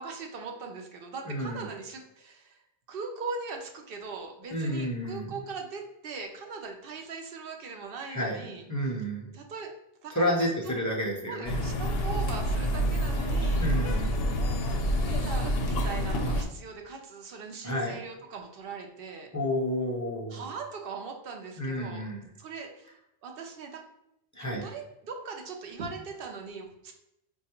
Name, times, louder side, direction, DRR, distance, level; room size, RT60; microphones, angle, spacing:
voice 1, 0.0-2.6 2.9-8.6 9.3-9.7 10.0-10.5 11.3-13.7 15.0-19.3 20.3-22.1 22.4-23.8 24.4-26.9, right 4 dB, 65° right, 3 dB, 0.8 m, -40 dB
voice 2, 1.3-1.7 4.5-5.3 8.1-9.3 10.1-11.6 13.6-14.3 17.6-18.0 19.3-20.4 21.6-22.3 24.3-24.7, equal, 25° left, -3 dB, 0.5 m, -30 dB
sound 1, 11.4-16.4, equal, 70° left, 0.7 m, -27 dB
4.4 x 2.3 x 2.8 m, 0.83 s
omnidirectional pair, 1.1 m